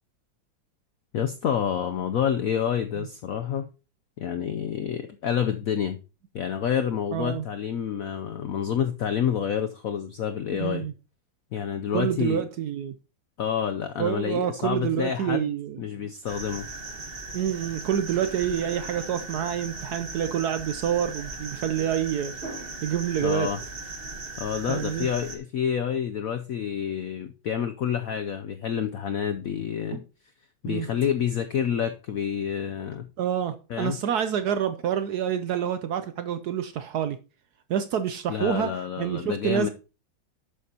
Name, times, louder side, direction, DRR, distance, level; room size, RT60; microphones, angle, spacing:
voice 1, 1.1-3.7 4.2-6.0 6.3-10.9 11.5-12.4 13.4-15.5 15.8-16.7 23.2-23.6 24.4-30.0 30.6-33.1 33.7-34.0 38.3-39.7, left 8 dB, 75° left, 0.8 m, -28 dB
voice 2, 7.1-7.4 10.6-10.9 11.9-12.9 14.0-16.1 17.3-22.3 22.8-23.5 24.7-25.1 29.9-30.0 30.6-30.9 33.2-37.2 37.7-38.7 39.0-39.7, right 9 dB, 70° right, 1.0 m, -27 dB
sound 1, 16.3-25.4, right 3 dB, 35° right, 1.3 m, -38 dB
11.5 x 8.5 x 2.8 m
omnidirectional pair, 2.2 m